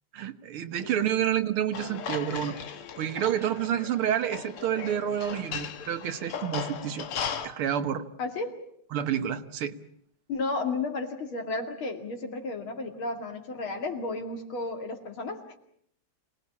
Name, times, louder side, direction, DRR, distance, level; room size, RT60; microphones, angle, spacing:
voice 1, 0.1-2.6 3.0-7.1 7.4-8.0 8.9-9.7, right 10 dB, 80° right, 10 dB, 2.0 m, -29 dB
sound 1, 1.7-7.5, left 7 dB, 90° left, 2.3 m, -37 dB
voice 2, 8.2-8.6 10.3-15.6, left 3 dB, 70° left, 5 dB, 3.2 m, -33 dB
27.0 x 19.0 x 8.4 m, 0.68 s
omnidirectional pair, 2.4 m